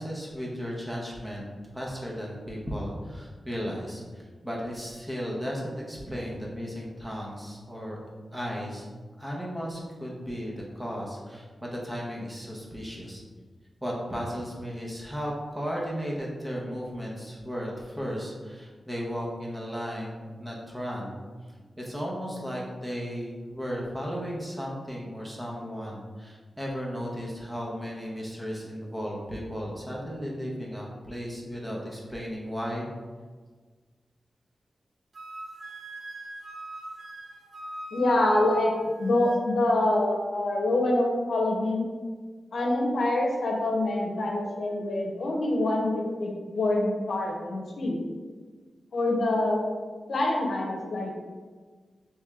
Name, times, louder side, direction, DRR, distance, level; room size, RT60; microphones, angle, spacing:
voice 1, 0.0-1.5 1.7-8.0 8.3-8.8 9.2-13.2 13.8-21.2 21.8-32.9, equal, 10° right, -3 dB, 0.8 m, -35 dB
Wind instrument woodwind instrument, 35.1-39.4, right 1 dB, 80° right, 0.5 m, -41 dB
voice 2, 37.9-38.7 39.0-41.8 42.5-48.0 48.9-49.7 50.1-51.2, left 1 dB, 75° left, 0 dB, 0.7 m, -25 dB
3.5 x 3.2 x 3.5 m, 1.4 s
wide cardioid pair, 130°, 0 cm